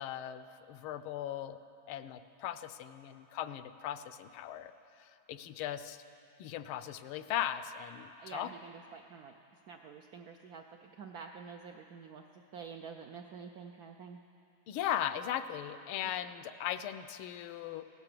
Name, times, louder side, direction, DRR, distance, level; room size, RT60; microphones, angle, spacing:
voice 1, 0.0-1.6 1.9-4.7 5.0-6.0 6.4-8.5 14.7-17.8, left 10 dB, 85° left, 12 dB, 1.5 m, -38 dB
voice 2, 8.2-9.3 9.7-14.2, right 6 dB, 75° right, 4 dB, 0.8 m, -48 dB
17.0 x 12.0 x 6.7 m, 2.8 s
omnidirectional pair, 2.3 m